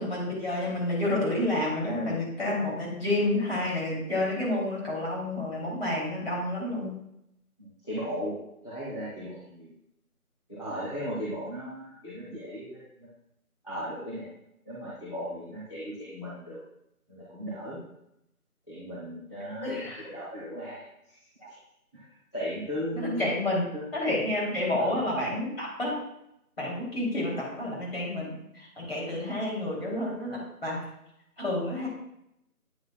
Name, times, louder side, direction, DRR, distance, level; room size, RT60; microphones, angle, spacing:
voice 1, 0.0-6.9 19.6-20.0 21.4-21.5 22.9-23.6 23.9-25.9 26.6-30.8 31.4-31.9, left 1 dB, 40° left, -4 dB, 3.0 m, -29 dB
voice 2, 7.6-8.3 8.6-9.7 10.5-13.1 13.6-14.2 14.7-16.6 17.1-17.8 18.7-21.1 21.5-21.6 21.9-22.0 22.3-23.2 23.7-23.9 24.7-24.9, equal, 20° left, -11 dB, 1.2 m, -37 dB
8.9 x 7.7 x 2.3 m, 0.81 s
figure-of-eight pair, 165°, 45 cm